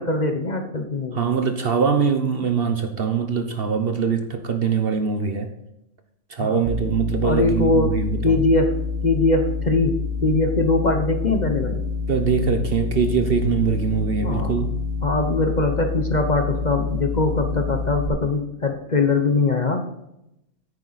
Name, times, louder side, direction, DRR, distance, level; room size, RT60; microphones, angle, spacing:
voice 1, 0.0-1.2 6.4-6.6 7.2-8.0 8.2-8.7 9.0-11.8 14.2-14.5 15.0-19.8, left 3 dB, 35° left, 5 dB, 0.9 m, -21 dB
voice 2, 1.1-5.5 6.3-8.4 12.1-14.7, right 6 dB, 50° right, 7 dB, 0.9 m, -22 dB
sound 1, 6.7-18.1, left 4 dB, 65° right, 1.3 m, -27 dB
10.0 x 9.1 x 4.1 m, 0.84 s
omnidirectional pair, 1.4 m